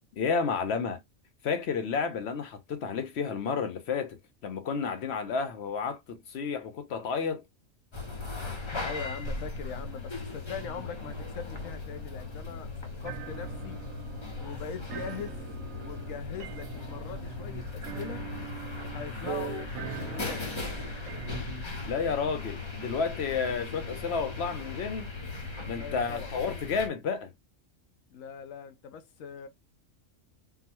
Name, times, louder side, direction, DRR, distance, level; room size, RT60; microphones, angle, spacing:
voice 1, 0.1-1.0 1.4-4.2 4.4-7.4 21.9-25.1 25.7-27.3, left 5 dB, 60° left, 0.8 m, -31 dB
sound 1, 7.9-26.9, left 3 dB, 25° left, 0.7 m, -38 dB
voice 2, 8.8-12.7 13.0-13.8 14.4-15.4 15.8-18.2 18.9-20.5 25.8-26.3 28.1-29.5, left 7 dB, 80° left, 1.1 m, -41 dB
sound 2, 13.0-21.4, right 9 dB, 85° right, 1.1 m, -42 dB
3.8 x 2.1 x 2.8 m
omnidirectional pair, 1.3 m